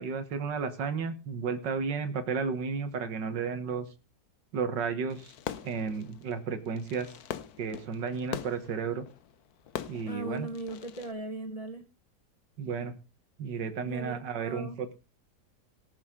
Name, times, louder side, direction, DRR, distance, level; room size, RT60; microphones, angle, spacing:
voice 1, 0.0-3.9 4.5-5.3 5.6-7.1 7.6-9.1 9.9-10.5 12.6-12.9 13.4-14.9, right 5 dB, 85° right, 10 dB, 2.0 m, -33 dB
Fireworks, 5.1-11.1, left 10 dB, 65° left, 1.2 m, -42 dB
voice 2, 10.1-11.8 13.8-14.7, right 2 dB, 25° left, 7 dB, 1.2 m, -38 dB
18.5 x 7.4 x 3.7 m, 0.30 s
omnidirectional pair, 1.9 m